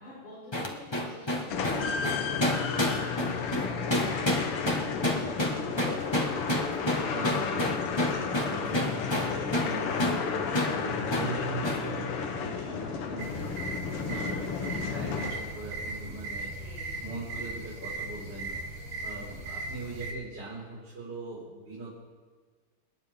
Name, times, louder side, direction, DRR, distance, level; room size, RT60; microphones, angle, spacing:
voice 1, 0.0-4.7 5.0-7.2 16.5-17.3 18.7-19.3, left 1 dB, 65° left, -10 dB, 6.4 m, -47 dB
sound 1, 0.5-9.7 10.0-10.2 10.5-10.8 11.1-11.3 11.6-11.9, left 1 dB, 15° left, 1.3 m, -29 dB
sound 2, 1.5-15.8, left 6 dB, 90° left, 2.0 m, -32 dB
voice 2, 5.5-5.9 7.1-16.5 17.0-18.5 19.0-21.9, right 2 dB, 50° right, -10 dB, 5.8 m, -41 dB
sound 3, 13.2-20.1, right 2 dB, 85° right, 2.9 m, -38 dB
28.5 x 9.9 x 3.7 m, 1.5 s
omnidirectional pair, 2.4 m